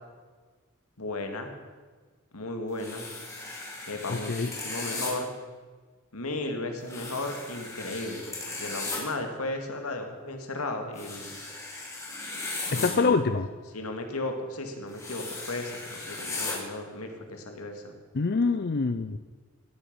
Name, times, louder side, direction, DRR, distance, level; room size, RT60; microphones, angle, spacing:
voice 1, 1.0-1.5 2.3-3.1 3.9-5.3 6.1-11.4 12.7-13.2 13.7-17.9, left 2 dB, 90° left, 5 dB, 2.3 m, -35 dB
sound 1, 2.8-5.1 6.8-9.0 11.0-12.9 14.9-16.5, left 2 dB, 15° left, 3.2 m, -37 dB
voice 2, 4.1-4.5 12.7-13.5 18.1-19.2, left 4 dB, 45° left, 10 dB, 0.5 m, -25 dB
17.5 x 9.1 x 7.0 m, 1.4 s
head